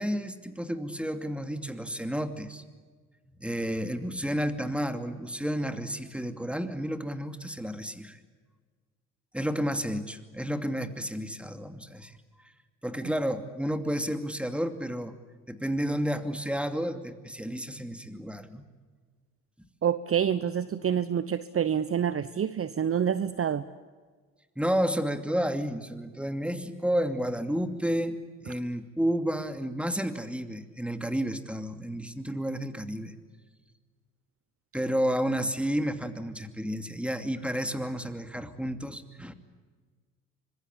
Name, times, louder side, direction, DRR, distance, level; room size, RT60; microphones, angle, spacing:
voice 1, 0.0-2.6 3.3-8.2 9.3-12.1 12.8-15.1 15.5-18.6 24.6-28.2 28.4-33.1 34.7-39.3, equal, 5° right, 8 dB, 2.7 m, -31 dB
voice 2, 19.8-23.6, right 8 dB, 35° right, 14 dB, 1.0 m, -27 dB
25.5 x 22.0 x 8.5 m, 1.5 s
hypercardioid pair, 60°, 40 cm